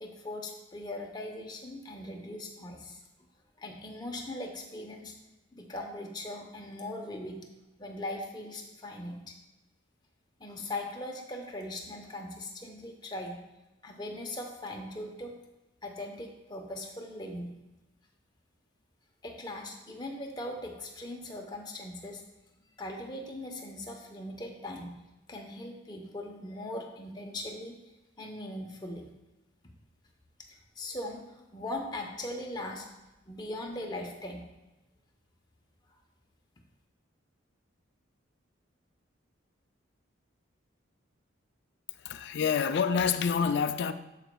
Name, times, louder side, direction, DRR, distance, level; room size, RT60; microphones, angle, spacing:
voice 1, 0.0-3.0 3.6-5.1 5.5-7.4 7.8-9.4 10.4-13.4 13.8-15.4 15.8-17.5 19.2-22.2 22.8-24.9 25.3-27.8 28.2-29.0 30.5-32.9 33.3-34.4, left 1 dB, 20° left, 0.8 m, -40 dB
voice 2, 41.9-43.9, left 6 dB, 55° left, 0.3 m, -27 dB
12.0 x 5.0 x 2.2 m
head